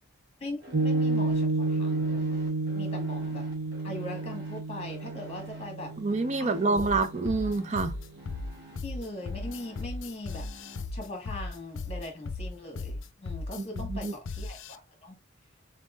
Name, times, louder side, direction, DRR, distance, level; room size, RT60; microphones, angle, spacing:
voice 1, 0.4-2.4 2.7-3.4 3.8-5.9 6.4-7.0 8.8-10.5 10.9-15.2, left 1 dB, 30° left, 1.4 m, -40 dB
sound 1, 0.6-10.8, right 1 dB, 55° right, 1.8 m, -50 dB
Piano, 0.7-7.4, right 3 dB, 80° right, 0.6 m, -30 dB
voice 2, 6.0-7.9 13.6-14.1, right 3 dB, 35° right, 0.5 m, -27 dB
sound 2, 6.8-14.8, left 3 dB, 70° left, 0.5 m, -36 dB
4.2 x 3.5 x 2.4 m
head